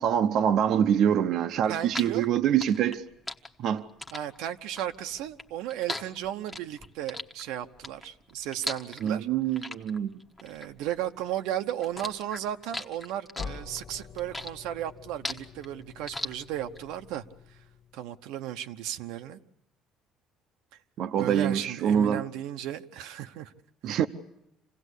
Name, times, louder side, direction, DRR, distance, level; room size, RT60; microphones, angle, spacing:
voice 1, 0.0-3.0 3.6-3.9 9.0-10.2 21.0-22.3 23.8-24.1, right 9 dB, 50° right, 0.8 m, -25 dB
sound 1, 1.5-11.4 11.7-16.8, left 2 dB, 5° left, 1.1 m, -38 dB
voice 2, 1.7-2.2 4.1-9.3 10.4-17.2 17.9-19.4 21.2-23.5 23.9-24.0, right 11 dB, 80° right, 1.0 m, -35 dB
sound 2, 13.4-18.2, left 5 dB, 35° left, 1.7 m, -45 dB
27.5 x 17.0 x 8.2 m
cardioid pair, 170°, 0 cm